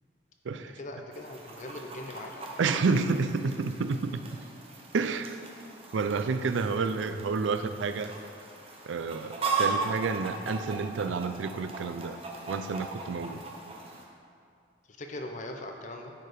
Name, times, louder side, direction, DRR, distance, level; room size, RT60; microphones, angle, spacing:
voice 1, 0.6-2.5 14.9-16.1, left 1 dB, 40° left, 3 dB, 0.6 m, -41 dB
Chicken rooster, 1.1-14.1, right 4 dB, 30° right, 0.9 m, -38 dB
voice 2, 2.6-4.2 4.9-5.4 5.9-8.1 8.8-12.2 12.5-13.4, right 4 dB, 85° right, 10 dB, 0.4 m, -29 dB
10.5 x 4.6 x 4.9 m, 2.3 s
head